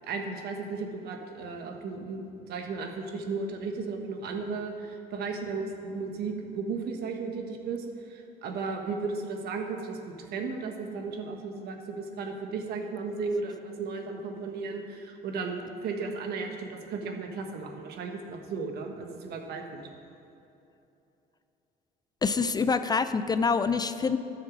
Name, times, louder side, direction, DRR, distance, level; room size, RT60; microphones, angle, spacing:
voice 1, 0.0-19.9, right 4 dB, 70° right, 3 dB, 1.3 m, -35 dB
voice 2, 22.2-24.2, left 5 dB, 25° left, 11 dB, 0.4 m, -26 dB
12.5 x 6.6 x 6.1 m, 2.8 s
cardioid pair, 110°, 17 cm